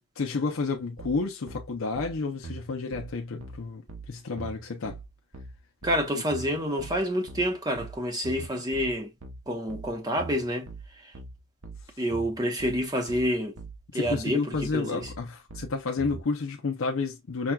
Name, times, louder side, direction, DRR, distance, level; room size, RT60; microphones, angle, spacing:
voice 1, 0.0-5.0 13.9-17.5, left 4 dB, 65° left, 0.5 m, -31 dB
sound 1, 1.0-16.2, right 4 dB, 75° right, 0.8 m, -42 dB
voice 2, 5.8-9.1 9.5-10.7 11.0-11.1 12.0-13.6 13.9-15.1, equal, 15° right, 0.8 m, -28 dB
5.9 x 2.3 x 2.2 m
head